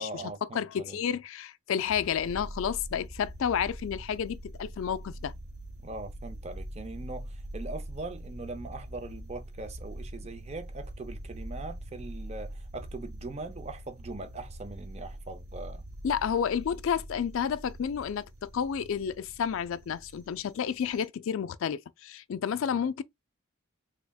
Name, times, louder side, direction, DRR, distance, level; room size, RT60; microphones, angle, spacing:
voice 1, 0.0-1.0 5.8-15.8, right 2 dB, 30° right, 0.5 m, -41 dB
voice 2, 0.5-5.3 16.0-23.0, left 7 dB, 65° left, 0.3 m, -31 dB
sound 1, 1.8-21.1, right 1 dB, 75° right, 0.8 m, -43 dB
3.5 x 3.4 x 2.3 m
head